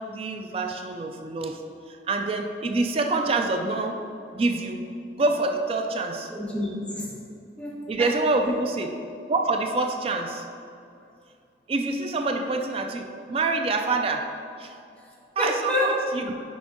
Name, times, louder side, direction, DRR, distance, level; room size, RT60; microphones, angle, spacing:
voice 1, 0.0-1.6 1.9-4.0 4.3-6.3 7.9-9.0 9.3-10.4 11.7-14.3 14.6-14.8 15.4-16.4, right 3 dB, 30° right, 4 dB, 0.3 m, -26 dB
voice 2, 6.3-7.1 7.6-8.1 8.4-8.5 15.0-15.1 15.4-15.9, left 1 dB, 5° left, -6 dB, 1.1 m, -29 dB
6.2 x 4.7 x 3.6 m, 2.5 s
head